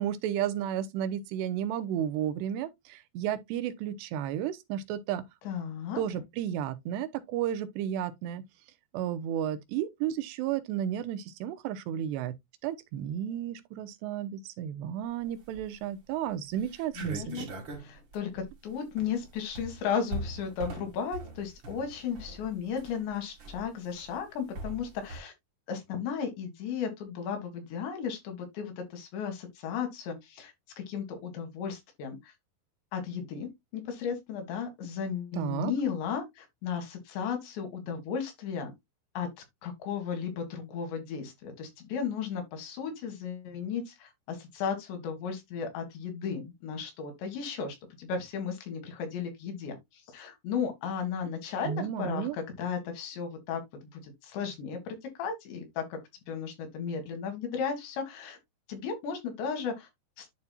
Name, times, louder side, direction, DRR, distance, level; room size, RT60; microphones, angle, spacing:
voice 1, 0.0-5.2 6.0-8.4 8.9-12.3 12.6-17.5 35.3-35.7 51.6-52.4, right 10 dB, 80° right, 2.9 m, -33 dB
voice 2, 5.5-6.0 17.0-17.5 17.8-25.3 25.7-32.2 32.9-38.7 39.2-39.3 39.6-49.8 50.1-53.6 53.9-56.0 56.3-58.4 58.7-59.9 60.2-60.3, left 7 dB, 90° left, 4.0 m, -35 dB
sound 1, 15.4-15.9 16.3-16.4 16.6-25.2, right 1 dB, 45° right, 1.5 m, -41 dB
11.0 x 4.2 x 2.3 m
omnidirectional pair, 4.9 m